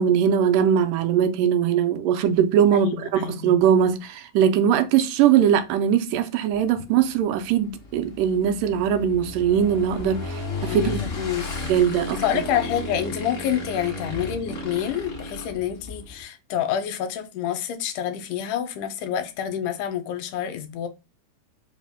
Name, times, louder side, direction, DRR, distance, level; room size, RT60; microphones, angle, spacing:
voice 1, 0.0-11.0 11.7-12.4, right 8 dB, 90° right, 2.1 m, -21 dB
voice 2, 2.7-3.6 10.7-20.9, left 9 dB, 85° left, 2.0 m, -28 dB
Motorcycle / Engine, 6.5-16.2, left 3 dB, 60° left, 0.8 m, -34 dB
5.0 x 2.0 x 3.5 m
omnidirectional pair, 3.7 m